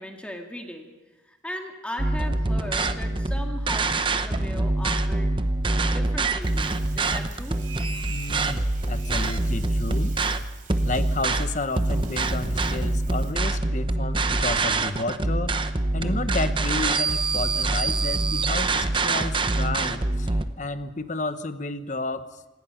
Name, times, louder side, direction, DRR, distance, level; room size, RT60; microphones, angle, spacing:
voice 1, 0.0-5.3 5.7-7.6, left 1 dB, 5° left, 3 dB, 1.9 m, -38 dB
sound 1, 2.0-20.4, right 2 dB, 25° right, 0.8 m, -25 dB
Bathtub (filling or washing), 6.4-13.3, right 7 dB, 45° right, 4.0 m, -49 dB
voice 2, 8.1-10.2 10.8-15.6 15.9-22.3, left 2 dB, 40° left, 11 dB, 1.1 m, -31 dB
26.5 x 19.0 x 5.8 m, 1.2 s
head